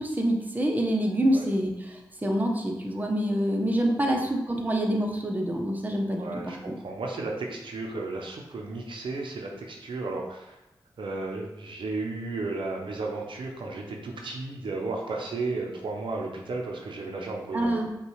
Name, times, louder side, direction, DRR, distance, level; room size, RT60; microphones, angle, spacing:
voice 1, 0.0-6.7 17.5-17.9, right 1 dB, 20° right, 1 dB, 0.8 m, -26 dB
voice 2, 6.2-10.6 11.0-17.9, right 3 dB, 75° right, 1 dB, 0.6 m, -34 dB
5.4 x 2.3 x 3.1 m, 0.93 s
cardioid pair, 50°, 9 cm